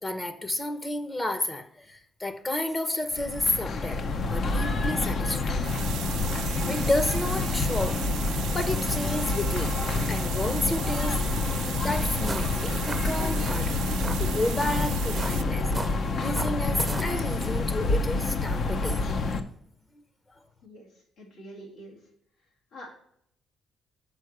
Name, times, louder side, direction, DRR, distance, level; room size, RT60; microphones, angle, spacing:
voice 1, 0.0-4.0 4.3-6.1 6.7-8.0 8.5-11.2 11.8-13.8 14.2-15.7 16.2-19.2, left 1 dB, 25° left, 0.9 m, -31 dB
sound 1, 3.1-19.4, left 3 dB, 55° left, 0.8 m, -28 dB
sound 2, 5.6-15.4, right 12 dB, 85° right, 0.4 m, -37 dB
sound 3, 12.1-17.3, right 3 dB, 20° right, 0.7 m, -39 dB
voice 2, 20.6-22.1 22.4-22.9, equal, 90° left, 2.4 m, -47 dB
6.4 x 4.6 x 6.6 m
cardioid pair, 90°, 0 cm